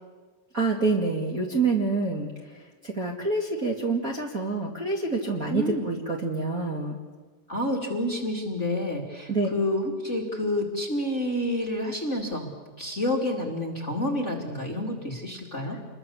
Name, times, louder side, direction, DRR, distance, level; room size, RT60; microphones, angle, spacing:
voice 1, 0.5-2.3 2.8-7.0 9.3-9.5 15.7-15.8, right 3 dB, 30° right, -1 dB, 1.9 m, -27 dB
voice 2, 5.5-5.9 7.5-12.5 12.8-15.8, left 1 dB, 25° left, 1 dB, 2.2 m, -29 dB
27.5 x 22.0 x 7.1 m, 1.4 s
omnidirectional pair, 4.0 m